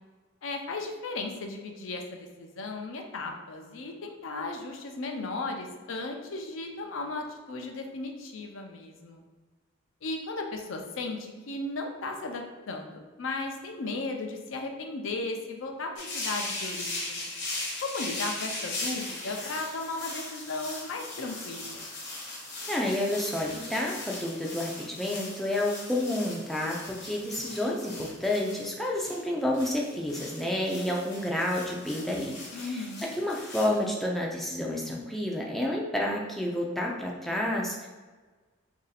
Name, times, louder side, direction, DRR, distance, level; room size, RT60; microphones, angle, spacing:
voice 1, 0.4-9.2 10.0-17.2 17.8-21.9 32.5-33.1, left 3 dB, 75° left, 3 dB, 0.5 m, -36 dB
sound 1, 16.0-33.8, left 2 dB, 55° left, 0.9 m, -39 dB
voice 2, 22.7-37.9, left 1 dB, ahead, -2 dB, 0.4 m, -30 dB
3.0 x 2.7 x 4.0 m, 1.3 s
head